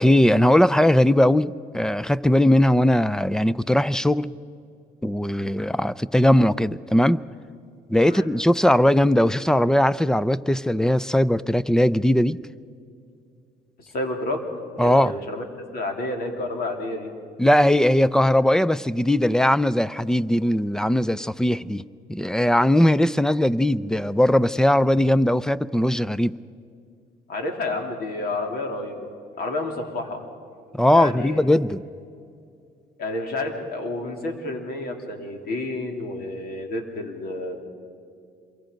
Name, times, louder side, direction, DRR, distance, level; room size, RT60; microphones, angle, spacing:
voice 1, 0.0-4.3 5.0-7.2 7.9-12.4 14.8-15.1 17.4-21.8 22.1-26.4 30.7-31.8, left 1 dB, 5° left, 17 dB, 0.4 m, -19 dB
voice 2, 13.8-14.4 14.7-15.4 15.7-17.1 27.3-30.2 30.9-31.7 33.0-37.6, left 2 dB, 65° left, 4 dB, 3.2 m, -30 dB
27.0 x 23.5 x 5.2 m, 2.4 s
cardioid pair, 110°, 17 cm